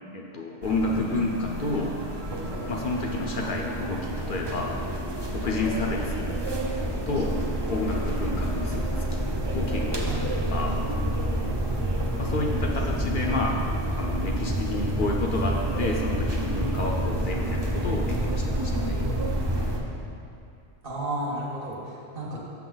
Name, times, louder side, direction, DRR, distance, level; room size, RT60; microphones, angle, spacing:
voice 1, 0.1-1.9 2.7-4.8 5.3-6.4 7.1-7.4 7.7-9.3 9.5-10.8 12.2-13.6 14.0-19.0, left 2 dB, 55° left, -1 dB, 0.7 m, -30 dB
sound 1, 0.6-19.8, right 1 dB, 30° right, 0.6 m, -28 dB
voice 2, 11.7-12.0 20.8-22.4, right 1 dB, 55° right, -4 dB, 1.4 m, -33 dB
6.9 x 6.2 x 3.9 m, 2.6 s
omnidirectional pair, 1.1 m